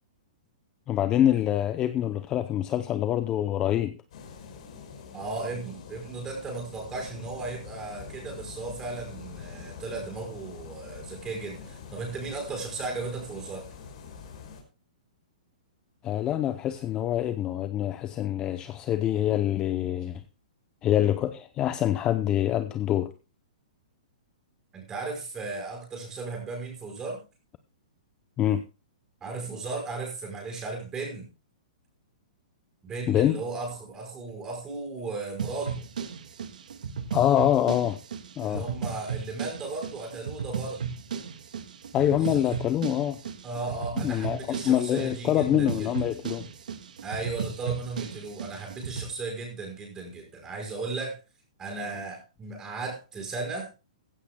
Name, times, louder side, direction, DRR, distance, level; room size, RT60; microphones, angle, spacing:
voice 1, 0.9-4.0 16.0-20.2 20.8-23.1 28.4-28.6 33.1-33.4 37.1-38.0 38.4-38.6 41.9-43.2 44.0-46.5, left 11 dB, 20° left, 0.6 m, -25 dB
sound 1, 4.1-14.6, left 6 dB, 50° left, 4.9 m, -45 dB
voice 2, 5.1-13.6 24.7-27.2 29.2-31.3 32.8-35.8 38.4-40.8 42.0-42.4 43.4-45.9 47.0-51.2 51.6-53.7, right 3 dB, 15° right, 5.1 m, -36 dB
sound 2, 35.4-49.1, right 6 dB, 80° right, 1.7 m, -35 dB
15.5 x 15.5 x 2.2 m
hypercardioid pair, 165°, 4 cm